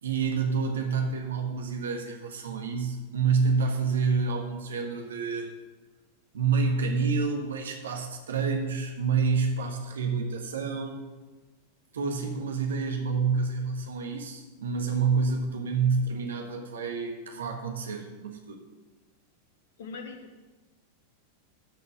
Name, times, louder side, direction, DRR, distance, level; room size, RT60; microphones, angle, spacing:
voice 1, 0.0-5.5 6.3-11.0 11.9-18.6, right 5 dB, 65° right, 3 dB, 1.4 m, -28 dB
voice 2, 19.8-20.5, left 4 dB, 60° left, 6 dB, 1.4 m, -41 dB
13.0 x 5.4 x 6.2 m, 1.2 s
figure-of-eight pair, 90°, 0 cm